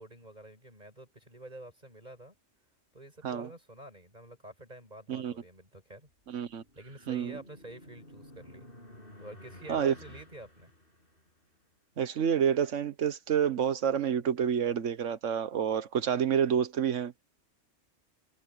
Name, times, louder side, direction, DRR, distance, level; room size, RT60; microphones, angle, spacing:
voice 1, 0.0-2.3 2.9-6.1 6.7-8.7 9.2-10.7, right 1 dB, 35° right, 6.6 m, -48 dB
sound 1, 6.3-11.5, left 1 dB, 50° left, 7.4 m, -52 dB
voice 2, 6.3-6.6 7.1-7.4 9.7-9.9 12.0-17.3, right 8 dB, 85° right, 1.4 m, -28 dB
omnidirectional pair, 1.2 m